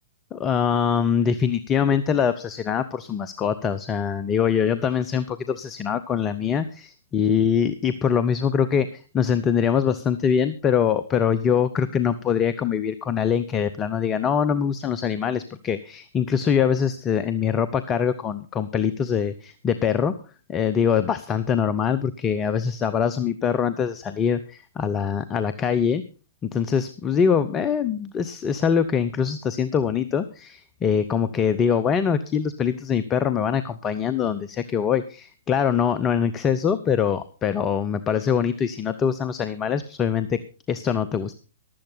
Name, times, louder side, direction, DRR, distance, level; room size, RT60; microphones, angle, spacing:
voice 1, 0.3-6.6 7.1-20.1 20.5-26.0 26.4-41.3, left 7 dB, 20° left, 14 dB, 0.7 m, -23 dB
15.0 x 11.5 x 4.1 m, 0.35 s
figure-of-eight pair, 115°, 0 cm